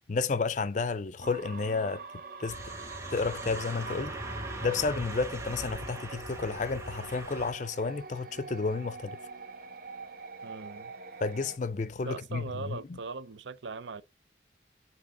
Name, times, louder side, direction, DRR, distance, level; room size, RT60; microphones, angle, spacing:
voice 1, 0.1-2.0 2.4-2.6 3.1-4.1 4.6-9.2 11.2-13.0, left 4 dB, 40° left, 0.4 m, -31 dB
sound 1, 1.2-11.6, right 4 dB, 50° right, 0.9 m, -44 dB
sound 2, 2.5-7.5, right 1 dB, 15° right, 1.0 m, -40 dB
voice 2, 10.4-10.9 12.0-14.0, right 4 dB, 80° right, 0.6 m, -40 dB
7.7 x 2.9 x 4.8 m
head